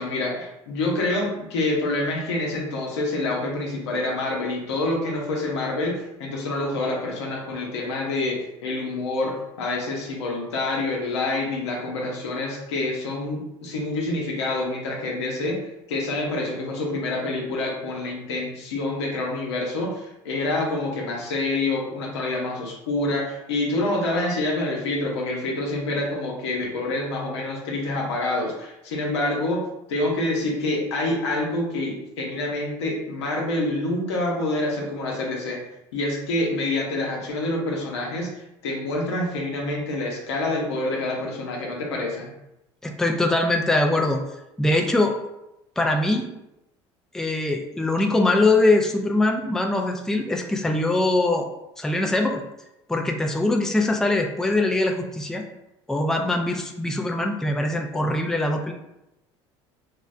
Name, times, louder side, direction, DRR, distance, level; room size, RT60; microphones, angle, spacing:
voice 1, 0.0-15.6 15.9-29.6 29.9-35.6 35.9-38.3 38.6-42.3, left 2 dB, 90° left, -1 dB, 0.7 m, -27 dB
voice 2, 42.8-44.2 44.6-45.2 45.8-46.3 47.1-51.5 51.8-52.4 52.9-55.4 55.9-58.7, left 2 dB, 5° left, 3 dB, 0.4 m, -22 dB
3.7 x 2.1 x 2.5 m, 0.89 s
hypercardioid pair, 80°, 14 cm